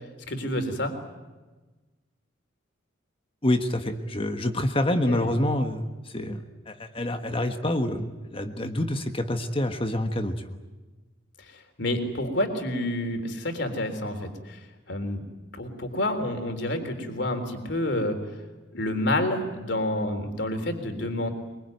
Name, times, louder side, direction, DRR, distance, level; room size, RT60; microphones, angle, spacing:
voice 1, 0.3-1.0 5.1-5.3 11.4-15.2 15.5-18.2 18.7-21.3, left 1 dB, 60° left, 6 dB, 3.6 m, -29 dB
voice 2, 3.4-5.9 6.1-10.6, left 1 dB, 30° left, 6 dB, 1.4 m, -27 dB
23.5 x 23.5 x 9.3 m, 1.2 s
head